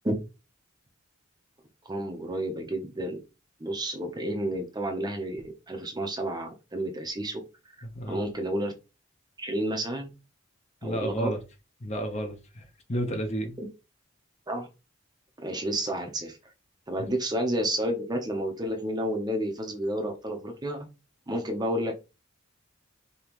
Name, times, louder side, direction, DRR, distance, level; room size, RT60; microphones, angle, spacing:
voice 1, 1.9-3.2 3.6-7.4 8.1-8.7 9.4-10.1 10.8-11.3 14.5-14.7 15.4-16.4 16.9-20.9 21.3-21.9, right 1 dB, 20° right, 0.8 m, -30 dB
voice 2, 7.8-8.2 10.8-11.4 11.8-12.6 12.9-13.6, right 1 dB, 35° left, 1.0 m, -31 dB
5.3 x 3.0 x 3.0 m
head